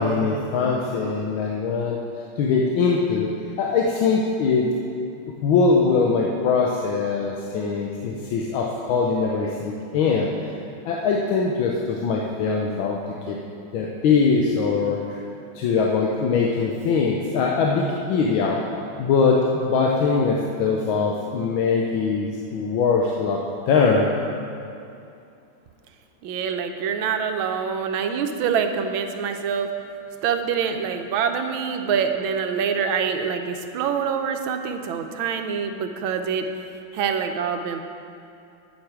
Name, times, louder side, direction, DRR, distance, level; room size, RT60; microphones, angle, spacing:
voice 1, 0.0-2.0 2.4-3.3 3.6-4.7 5.4-10.3 10.8-13.0 13.3-13.4 13.7-15.2 15.5-18.6 19.0-24.1, left 4 dB, 80° left, -2 dB, 1.5 m, -22 dB
voice 2, 26.2-29.7 30.2-36.5 36.9-37.8, right 6 dB, 85° right, 6 dB, 1.4 m, -25 dB
9.6 x 7.3 x 4.8 m, 2.6 s
omnidirectional pair, 2.2 m